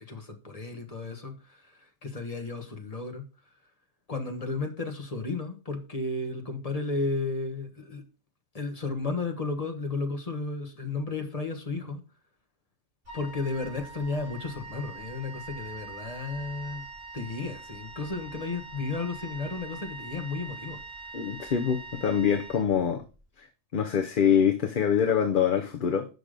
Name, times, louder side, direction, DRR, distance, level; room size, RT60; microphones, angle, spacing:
voice 1, 0.0-1.6 2.0-3.2 4.1-8.0 8.5-12.0 13.1-16.8 17.1-20.8, left 3 dB, 30° left, 5 dB, 1.5 m, -33 dB
Wind instrument woodwind instrument, 13.0-23.1, right 3 dB, 70° right, 4.0 m, -43 dB
voice 2, 21.1-23.0 23.4-23.5 23.7-26.1, left 8 dB, 45° left, 5 dB, 0.9 m, -25 dB
8.1 x 5.9 x 5.1 m, 0.33 s
omnidirectional pair, 1.3 m